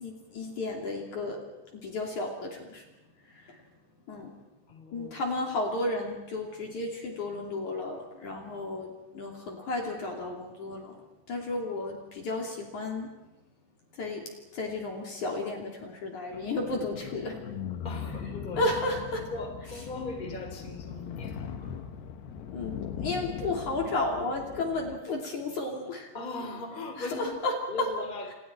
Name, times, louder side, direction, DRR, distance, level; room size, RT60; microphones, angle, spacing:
voice 1, 0.0-1.4 1.7-2.8 3.3-3.6 4.1-4.3 4.9-13.1 13.9-14.3 14.5-17.4 18.6-19.2 22.5-26.1 27.0-27.5, left 2 dB, 45° left, 0 dB, 4.1 m, -33 dB
voice 2, 4.7-5.2 17.8-18.7 19.1-21.8 26.1-27.4 27.7-28.3, left 2 dB, 10° left, 3 dB, 3.2 m, -39 dB
sound 1, 16.3-25.0, left 7 dB, 70° left, 3.5 m, -40 dB
30.0 x 28.5 x 4.5 m, 0.96 s
omnidirectional pair, 5.1 m